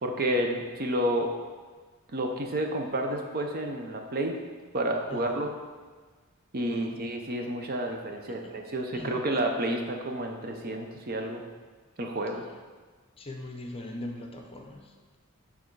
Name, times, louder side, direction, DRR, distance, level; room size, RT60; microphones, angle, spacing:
voice 1, 0.0-1.3 2.1-4.4 4.7-5.5 6.5-11.4 12.0-12.4, right 1 dB, 45° right, 3 dB, 0.7 m, -30 dB
voice 2, 5.1-5.4 6.7-7.0 8.3-8.5 8.9-9.1 13.2-15.2, left 1 dB, 25° left, 2 dB, 0.7 m, -41 dB
8.5 x 3.6 x 4.6 m, 1.4 s
head